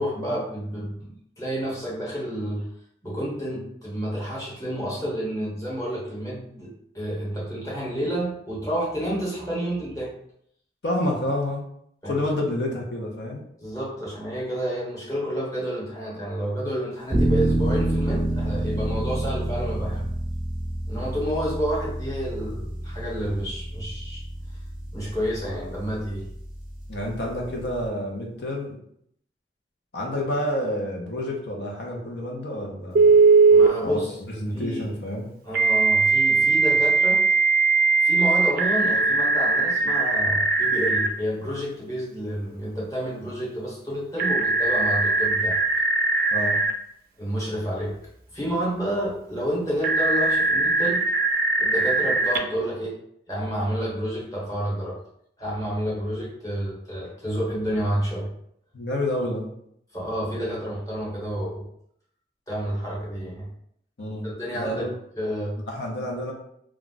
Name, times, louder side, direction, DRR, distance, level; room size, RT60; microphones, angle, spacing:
voice 1, 0.0-2.7 3.0-10.1 12.0-12.2 13.6-20.0 20.9-24.2 24.9-26.2 33.5-34.2 34.5-34.9 35.4-37.2 38.0-45.6 47.2-47.9 48.3-51.0 51.6-52.9 53.3-55.0 55.4-58.3 59.9-61.6 62.5-63.5 64.0-64.9 65.2-65.6, equal, 20° left, -6 dB, 1.1 m, -29 dB
voice 2, 10.8-11.6 12.0-13.4 26.9-28.8 29.9-33.1 33.8-34.0 34.3-35.3 46.3-46.6 58.7-59.4 64.0-64.9 65.7-66.3, left 1 dB, 80° left, 0 dB, 0.8 m, -29 dB
sound 1, 17.1-27.9, right 1 dB, 5° right, 0.7 m, -28 dB
Telephone, 32.9-33.7 35.5-41.1 44.2-46.7 49.8-52.4, right 3 dB, 55° right, 0.3 m, -20 dB
2.4 x 2.3 x 3.9 m, 0.71 s
head